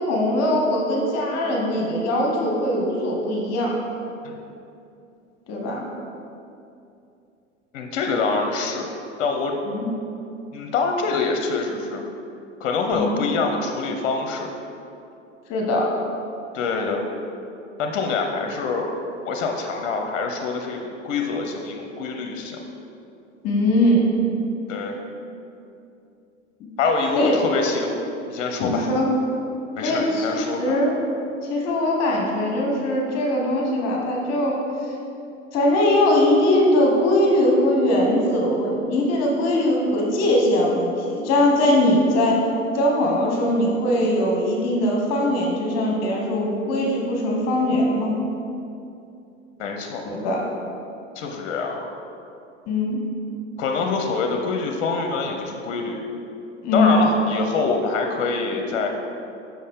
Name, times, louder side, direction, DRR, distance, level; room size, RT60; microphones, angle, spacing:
voice 1, 0.0-3.8 5.5-5.9 9.7-9.9 12.9-13.2 15.5-15.9 23.4-24.1 27.1-27.4 28.6-29.1 29.8-30.9 31.4-34.6 35.5-42.4 42.7-48.1 50.0-50.4 52.7-53.0 56.6-57.0, left 1 dB, 40° left, -1 dB, 1.3 m, -21 dB
voice 2, 7.7-8.9 9.2-9.5 10.5-12.0 12.6-14.5 16.5-17.1 17.8-18.9 19.2-22.6 24.7-25.0 26.8-28.0 28.3-28.9 29.8-30.8 49.6-50.0 51.1-51.8 53.6-56.0 56.7-58.9, left 4 dB, 60° left, 3 dB, 0.8 m, -25 dB
6.4 x 5.9 x 3.6 m, 2.7 s
hypercardioid pair, 90°, 38 cm